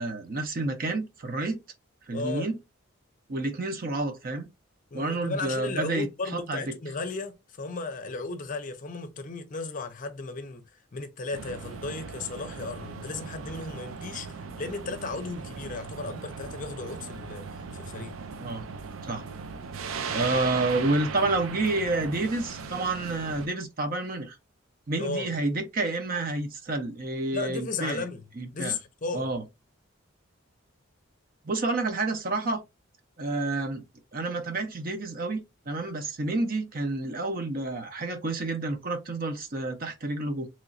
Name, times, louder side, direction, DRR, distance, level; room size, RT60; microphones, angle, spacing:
voice 1, 0.0-1.6 2.1-2.6 3.3-4.5 4.9-6.1 6.3-6.8 18.4-18.6 19.0-19.2 20.1-24.4 24.9-28.0 28.4-28.8 29.1-29.4 31.4-32.6 33.2-33.8 34.1-40.5, right 2 dB, 45° right, 0.6 m, -29 dB
voice 2, 2.1-2.5 4.9-10.6 10.9-18.2 25.0-25.3 27.3-28.2 28.5-29.3, left 3 dB, 40° left, 0.6 m, -35 dB
sound 1, 11.3-23.5, right 5 dB, 90° right, 0.5 m, -38 dB
3.1 x 2.9 x 2.5 m
head